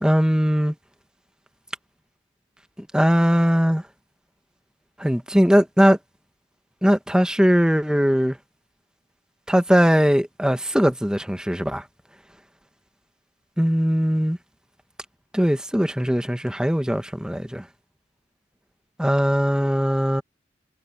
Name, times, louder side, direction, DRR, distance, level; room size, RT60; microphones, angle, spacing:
voice 1, 0.0-0.7 2.9-3.8 5.0-6.0 6.8-8.4 9.5-11.8 13.6-14.4 15.3-17.6 19.0-20.2, equal, 5° right, 1.4 m, -20 dB
head